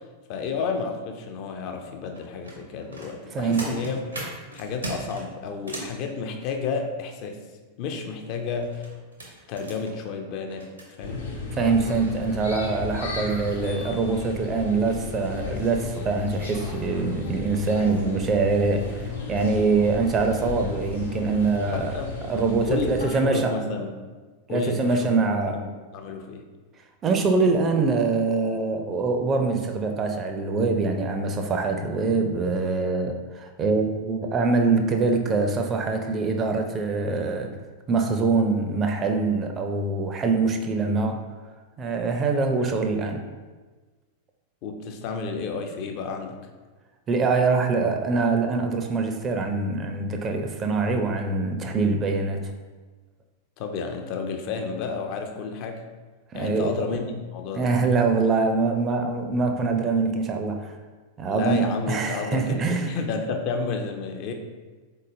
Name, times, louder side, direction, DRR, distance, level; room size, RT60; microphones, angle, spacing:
voice 1, 0.3-4.2 4.5-7.4 7.8-8.9 9.5-10.7 11.0-11.2 21.7-22.1 22.7-23.9 24.5-25.1 25.5-26.4 44.6-46.4 53.6-55.8 56.3-57.7 61.3-64.3, left 4 dB, 45° left, 4 dB, 0.5 m, -31 dB
sound 1, 2.1-6.0 8.5-10.9 11.6-11.7 12.2-12.4 12.8-13.0 13.4-13.5, right 1 dB, 80° right, 0.8 m, -39 dB
voice 2, 3.3-3.7 11.5-21.9 22.3-23.5 24.5-25.6 27.0-37.5 37.9-41.2 41.8-43.3 47.1-52.5 56.3-56.7 57.5-60.7 61.2-62.9, right 4 dB, 25° right, 5 dB, 0.4 m, -24 dB
sound 2, 11.0-23.1, left 3 dB, 70° left, 0.8 m, -34 dB
3.8 x 3.7 x 2.6 m, 1.3 s
figure-of-eight pair, 90°, 0 cm